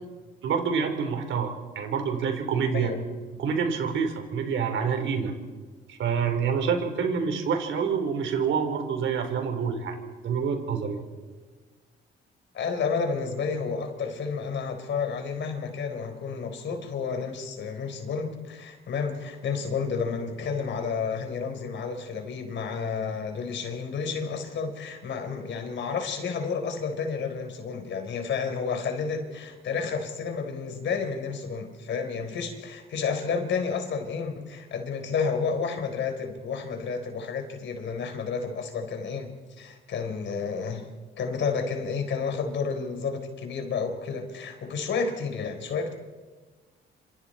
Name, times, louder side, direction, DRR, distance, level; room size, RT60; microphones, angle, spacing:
voice 1, 0.4-1.5 1.8-2.9 3.4-5.3 5.9-10.0 10.2-11.0, right 6 dB, 75° right, 5 dB, 4.0 m, -27 dB
voice 2, 12.5-40.9 41.2-45.9, left 5 dB, 65° left, 6 dB, 4.0 m, -31 dB
27.0 x 26.5 x 4.4 m, 1.4 s
cardioid pair, 90°, 20 cm